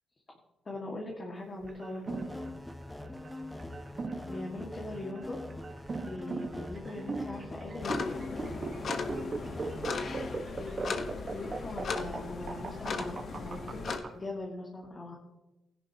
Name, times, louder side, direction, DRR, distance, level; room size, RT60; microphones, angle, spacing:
voice 1, 0.7-2.3 4.3-5.4 6.0-8.4 10.2-15.2, left 2 dB, 35° left, -1 dB, 1.9 m, -41 dB
sound 1, 1.6-14.1, right 3 dB, 40° right, 1.3 m, -39 dB
sound 2, 2.1-10.4, left 2 dB, 5° left, 0.7 m, -43 dB
sound 3, 7.8-14.0, left 4 dB, 55° left, 1.1 m, -37 dB
16.0 x 10.5 x 2.9 m, 1.0 s
cardioid pair, 85°, 0 cm